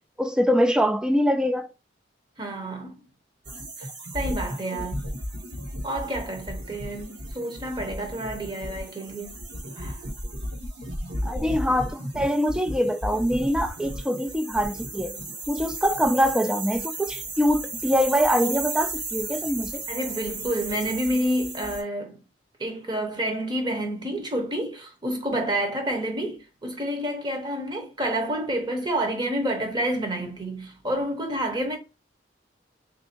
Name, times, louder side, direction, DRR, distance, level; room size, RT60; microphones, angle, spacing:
voice 1, 0.2-1.7 11.2-15.2 15.5-19.8, equal, 5° right, 0.3 m, -24 dB
voice 2, 2.4-3.0 3.8-3.9 4.1-5.0 5.8-9.3 9.8-10.0 19.9-22.2 22.6-31.8, right 1 dB, 25° right, 0.9 m, -29 dB
sound 1, 3.4-21.8, right 1 dB, 65° right, 1.5 m, -34 dB
3.4 x 2.6 x 4.3 m
head